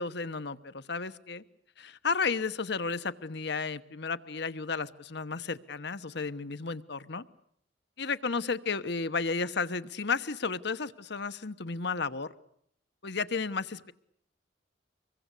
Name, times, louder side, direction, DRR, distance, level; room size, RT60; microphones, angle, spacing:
voice 1, 0.0-1.4 1.8-7.2 8.0-12.3 13.0-13.9, left 4 dB, 65° left, 12 dB, 1.1 m, -33 dB
25.5 x 22.0 x 8.3 m, 0.70 s
head